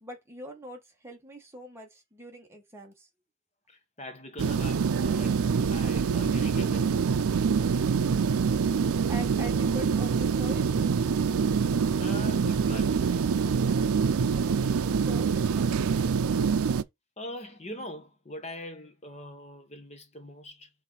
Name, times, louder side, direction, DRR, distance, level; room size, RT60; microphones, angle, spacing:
voice 1, 0.0-3.1 9.1-10.7 15.0-16.2, equal, 10° right, 1.4 m, -43 dB
voice 2, 3.7-5.4 5.7-7.0 12.0-13.6 17.2-20.7, left 1 dB, 30° left, 1.0 m, -42 dB
sound 1, 4.4-16.8, right 6 dB, 85° right, 0.4 m, -25 dB
4.7 x 3.8 x 5.4 m
head